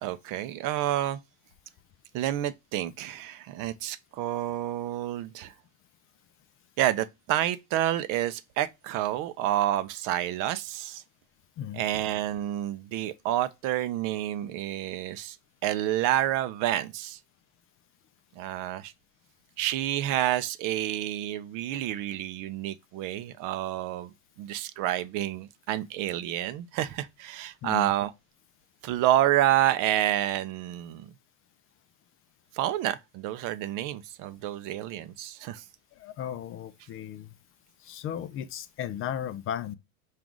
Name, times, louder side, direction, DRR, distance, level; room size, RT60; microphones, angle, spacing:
voice 1, 0.0-1.2 2.1-5.5 6.8-11.0 11.7-15.4 15.6-17.2 18.4-18.9 19.6-24.1 24.4-28.1 28.8-31.1 32.5-35.6, right 13 dB, 50° right, 0.5 m, -29 dB
voice 2, 36.0-37.3 37.8-39.8, left 10 dB, 30° left, 0.4 m, -35 dB
4.7 x 2.5 x 3.7 m
supercardioid pair, 100°, 43 cm